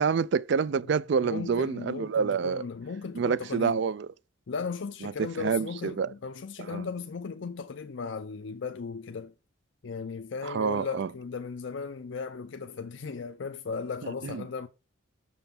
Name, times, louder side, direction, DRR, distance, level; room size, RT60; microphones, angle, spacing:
voice 1, 0.0-2.7 3.1-4.1 5.0-6.1 6.6-6.9 10.4-11.1 14.2-14.5, right 6 dB, 55° right, 0.3 m, -28 dB
voice 2, 1.2-3.8 4.5-9.3 9.8-14.7, left 5 dB, 60° left, 0.5 m, -36 dB
6.9 x 5.5 x 5.8 m
head